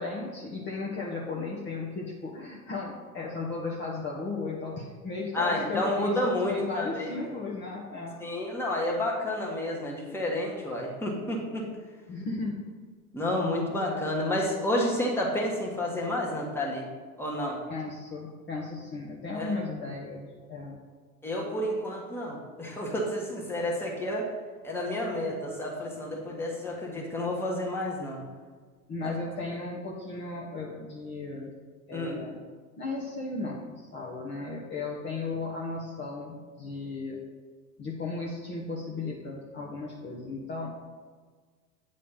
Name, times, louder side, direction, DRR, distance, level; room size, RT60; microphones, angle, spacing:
voice 1, 0.0-8.2 12.1-12.6 17.7-20.8 25.2-25.3 28.9-31.5 31.9-32.4 32.8-37.2 37.8-40.7, left 3 dB, 25° left, -4 dB, 1.1 m, -35 dB
voice 2, 5.3-7.3 8.2-11.7 13.1-16.9 17.2-17.6 19.3-19.5 21.2-24.3 24.6-28.2 29.0-29.1 31.9-32.2, left 1 dB, 5° left, -2 dB, 1.4 m, -30 dB
8.4 x 3.3 x 5.6 m, 1.5 s
hypercardioid pair, 95°, 45 cm